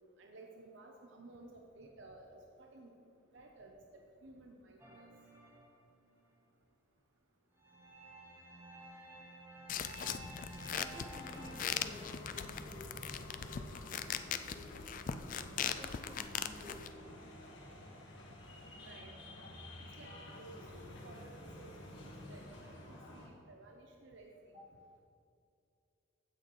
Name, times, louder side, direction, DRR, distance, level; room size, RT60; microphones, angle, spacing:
voice 1, 0.2-2.9 3.3-5.1 18.8-19.1 19.9-21.7 22.0-24.6, right 2 dB, 70° right, 2 dB, 0.8 m, -55 dB
sound 1, 4.8-6.2 7.6-11.7, right 2 dB, 15° right, 1.9 m, -53 dB
sound 2, 9.7-16.9, left 8 dB, 40° left, 0.3 m, -40 dB
voice 2, 10.7-14.2 14.5-15.0 15.3-17.7 24.5-24.7, left 1 dB, 30° right, -3 dB, 1.6 m, -54 dB
sound 3, 11.2-23.3, left 1 dB, 65° left, 1.5 m, -51 dB
15.5 x 6.4 x 3.2 m, 2.5 s
head